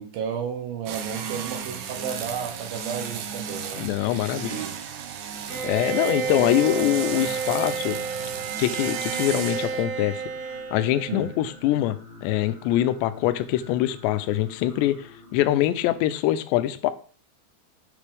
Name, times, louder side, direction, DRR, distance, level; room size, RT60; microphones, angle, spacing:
voice 1, 0.0-3.9 4.2-4.8 11.1-11.3, right 7 dB, 70° right, 2.4 m, -33 dB
sound 1, 0.9-9.8, right 7 dB, 90° right, 1.7 m, -35 dB
voice 2, 3.7-4.6 5.6-8.0 8.6-10.2 10.7-16.9, left 14 dB, 85° left, 2.9 m, -24 dB
Singing, 5.2-16.0, left 2 dB, 20° right, 2.4 m, -47 dB
Bowed string instrument, 5.5-11.5, right 6 dB, 55° right, 2.2 m, -31 dB
9.8 x 7.5 x 3.5 m
omnidirectional pair, 4.9 m